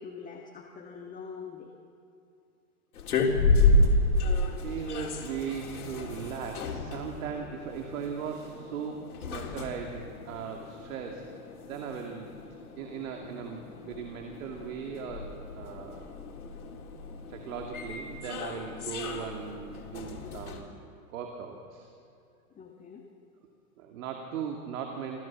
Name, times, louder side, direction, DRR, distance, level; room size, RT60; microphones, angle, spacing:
voice 1, 0.0-1.7 22.5-23.1, left 5 dB, 20° left, 1 dB, 1.6 m, -44 dB
sound 1, 2.9-20.6, left 2 dB, 75° left, 3.8 m, -31 dB
voice 2, 4.5-11.3 11.6-12.3 12.8-16.1 17.3-20.7 21.1-21.9 23.8-25.3, right 7 dB, 65° right, 2 dB, 2.6 m, -38 dB
26.5 x 16.0 x 7.4 m, 2.5 s
hypercardioid pair, 130°, 44 cm